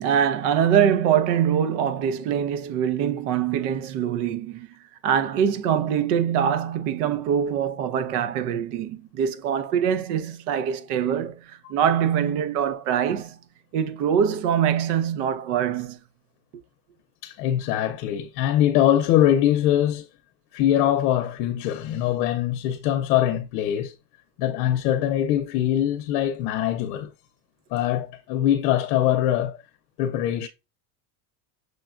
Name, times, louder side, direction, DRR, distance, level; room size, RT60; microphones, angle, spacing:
voice 1, 0.0-4.7 5.0-13.4 13.7-16.0, right 8 dB, 75° right, 0.7 m, -23 dB
voice 2, 17.2-20.1 20.5-23.9 24.4-27.1 27.7-29.6 30.0-30.5, left 11 dB, 75° left, 0.7 m, -22 dB
6.3 x 2.2 x 2.4 m
supercardioid pair, 140°, 46 cm